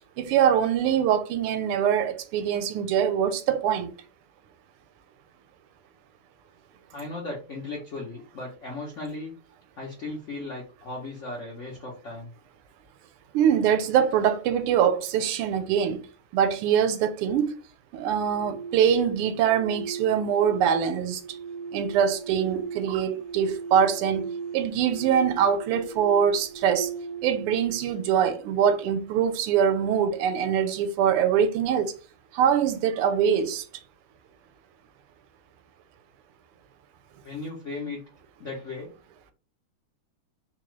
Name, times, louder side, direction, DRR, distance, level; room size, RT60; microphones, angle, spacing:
voice 1, 0.2-3.9 13.3-16.0 16.3-17.5 17.9-21.2 21.7-26.9 27.2-31.9 32.3-33.6, right 8 dB, 90° right, 1.5 m, -23 dB
voice 2, 6.9-9.3 9.8-12.3 37.2-38.0 38.4-39.0, left 2 dB, 85° left, 0.6 m, -36 dB
sound 1, 18.1-29.1, right 5 dB, 5° right, 0.9 m, -38 dB
4.1 x 2.4 x 3.0 m
omnidirectional pair, 2.4 m